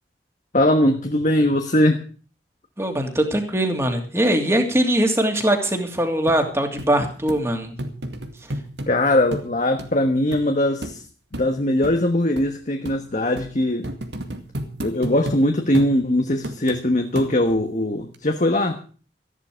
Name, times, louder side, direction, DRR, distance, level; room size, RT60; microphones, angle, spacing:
voice 1, 0.5-2.0 8.9-11.0 11.3-13.9 14.8-18.8, left 1 dB, 45° left, 5 dB, 1.3 m, -20 dB
voice 2, 2.8-7.7 8.4-8.5, right 1 dB, 15° right, 4 dB, 2.7 m, -21 dB
sound 1, 6.3-6.4 6.8-6.9 7.3-7.4 7.8-8.9 9.3-9.5 9.8-9.9 10.3-10.4 10.8-11.0 11.3-11.5 11.8-12.0 12.4-12.5 12.8-13.0 13.4-13.5 13.8-15.4 15.7-15.9 16.4-16.8 17.2-17.6 18.1-18.2, equal, 85° right, 2.2 m, -31 dB
14.5 x 11.5 x 6.4 m, 0.39 s
head